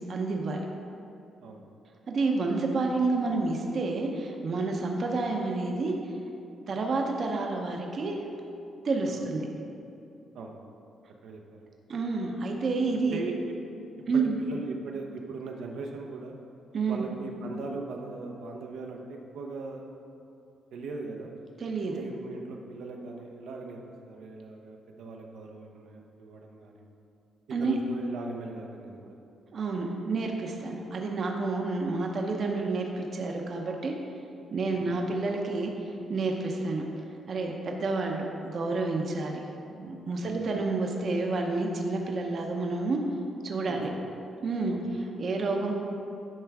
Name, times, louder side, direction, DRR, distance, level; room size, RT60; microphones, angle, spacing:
voice 1, 0.1-0.7 2.1-6.1 6.7-8.2 8.8-9.5 11.9-13.2 14.1-14.4 16.7-17.0 21.6-21.9 27.5-27.7 29.5-33.9 34.5-35.7 36.1-36.9 37.3-39.4 39.7-43.0 43.4-43.9 44.4-45.7, right 3 dB, 45° right, 1 dB, 0.7 m, -29 dB
voice 2, 11.2-11.6 12.9-13.5 14.4-16.3 16.9-19.8 20.7-21.3 21.8-23.8 24.1-26.8 27.6-29.2 34.7-35.0 40.2-40.4 43.7-44.1 44.7-44.8, right 3 dB, 80° right, 1 dB, 0.8 m, -39 dB
10.5 x 5.7 x 3.5 m, 2.7 s
cardioid pair, 150°, 0 cm